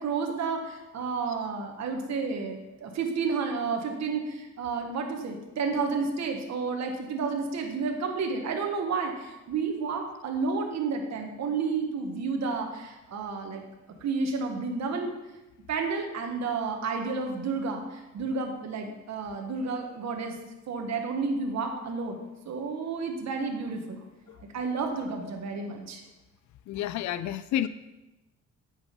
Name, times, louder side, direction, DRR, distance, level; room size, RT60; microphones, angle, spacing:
voice 1, 0.0-13.6 14.0-15.1 15.7-20.4 20.7-22.2 22.4-24.0 24.5-26.0, right 4 dB, 60° right, 3 dB, 1.6 m, -31 dB
voice 2, 26.7-27.7, left 11 dB, 70° left, 14 dB, 0.5 m, -29 dB
9.1 x 6.3 x 5.3 m, 1.0 s
cardioid pair, 90°, 30 cm